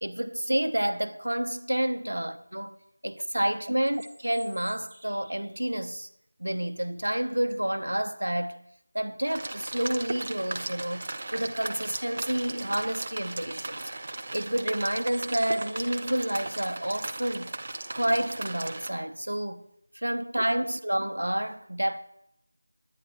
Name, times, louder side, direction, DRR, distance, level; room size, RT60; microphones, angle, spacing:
voice 1, 0.0-6.1 6.4-8.6 8.9-13.8 14.3-17.5 17.9-19.6 19.9-22.0, right 1 dB, 90° right, 1.1 m, -29 dB
sound 1, 3.7-5.6 10.1-10.2 10.6-11.0 13.1-13.2 13.5-13.8 15.0-16.3, right 1 dB, 5° right, 4.0 m, -52 dB
sound 2, 9.3-18.9, right 2 dB, 40° right, 0.9 m, -37 dB
20.0 x 9.9 x 3.2 m
figure-of-eight pair, 170°, 0 cm